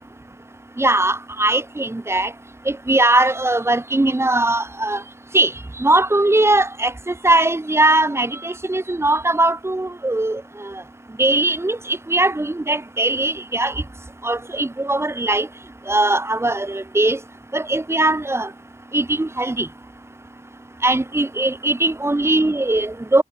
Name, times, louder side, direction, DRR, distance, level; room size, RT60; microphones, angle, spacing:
voice 1, 0.8-2.3 2.7-5.0 5.3-5.5 5.8-10.8 11.2-13.8 14.2-15.5 15.9-17.2 17.5-18.5 18.9-19.7 20.8-23.2, right 2 dB, 20° right, 1.2 m, -20 dB
wide cardioid pair, 65°, 12 cm